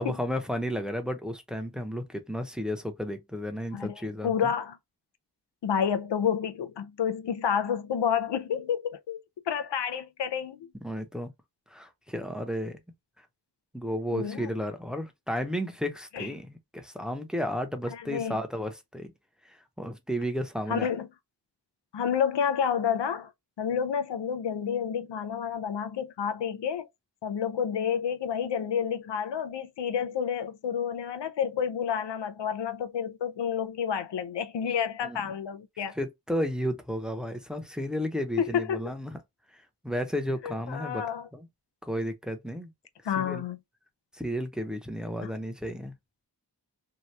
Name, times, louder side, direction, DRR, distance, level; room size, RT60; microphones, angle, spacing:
voice 1, 0.0-4.5 10.8-11.3 11.7-12.8 13.7-19.1 19.5-20.9 35.0-35.2 35.9-39.2 39.5-41.0 41.3-41.5 41.8-42.7 43.2-43.4 44.1-45.9, equal, ahead, 0.7 m, -33 dB
voice 2, 4.2-4.8 5.6-10.7 14.1-14.5 16.1-16.3 17.9-18.4 20.7-21.1 21.9-23.3 23.6-26.9 27.2-36.0 38.4-38.9 40.4-41.3 43.0-43.6 45.2-45.3, left 8 dB, 80° left, 0.5 m, -29 dB
2.8 x 2.3 x 3.2 m
wide cardioid pair, 45°, 42 cm